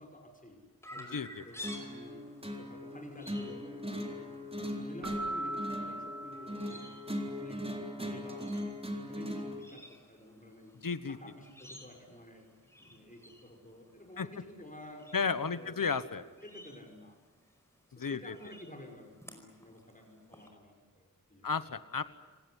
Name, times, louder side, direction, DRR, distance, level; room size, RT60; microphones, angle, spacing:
voice 1, 0.0-2.2 2.6-4.4 4.7-7.0 7.4-8.6 9.1-10.8 11.1-12.5 12.8-17.2 17.9-21.5, left 1 dB, 25° left, 3 dB, 6.0 m, -52 dB
Chirp tweet, 0.8-20.5, left 1 dB, 10° left, 5.1 m, -54 dB
voice 2, 1.1-1.4 10.8-11.2 14.2-14.3 15.1-16.2 18.0-18.3 21.4-22.0, left 5 dB, 80° left, 13 dB, 1.2 m, -33 dB
sound 1, 1.6-9.6, equal, 15° right, 3.8 m, -39 dB
Keyboard (musical), 5.0-7.4, right 1 dB, 60° right, 1.0 m, -40 dB
27.5 x 18.0 x 10.0 m, 1.4 s
wide cardioid pair, 55°, 33 cm